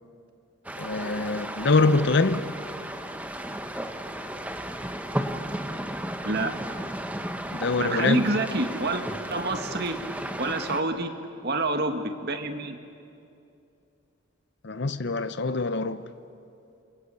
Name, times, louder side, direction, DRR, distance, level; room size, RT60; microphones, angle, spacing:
sound 1, 0.6-10.8, right 1 dB, 5° right, 1.0 m, -34 dB
voice 1, 0.8-2.5 7.5-8.3 14.6-16.0, left 3 dB, 55° left, 0.8 m, -24 dB
voice 2, 7.8-9.0 9.3-10.0 10.4-11.1 11.4-12.8, right 2 dB, 50° right, 1.7 m, -27 dB
28.0 x 22.0 x 8.3 m
head